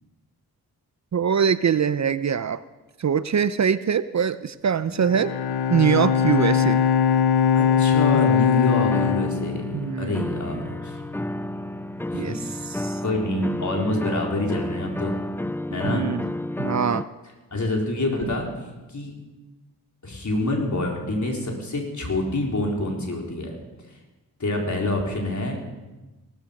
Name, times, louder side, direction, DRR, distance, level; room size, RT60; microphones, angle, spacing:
voice 1, 1.1-2.6 3.0-5.3 5.7-6.8 9.7-10.7 12.1-12.4 12.7-13.0 15.8-16.2 16.6-17.1, right 7 dB, 45° right, 14 dB, 0.6 m, -23 dB
Bowed string instrument, 4.9-10.4, left 7 dB, 85° left, 0.8 m, -21 dB
voice 2, 7.5-11.0 12.1-12.4 13.0-15.1 15.7-16.0 17.5-18.5 18.9-19.1 20.0-23.6 24.4-25.6, left 1 dB, 50° left, 0 dB, 4.2 m, -27 dB
sound 1, 8.9-17.0, left 1 dB, 5° left, 0.4 m, -31 dB
17.5 x 14.0 x 5.3 m, 1.1 s
cardioid pair, 60°, 38 cm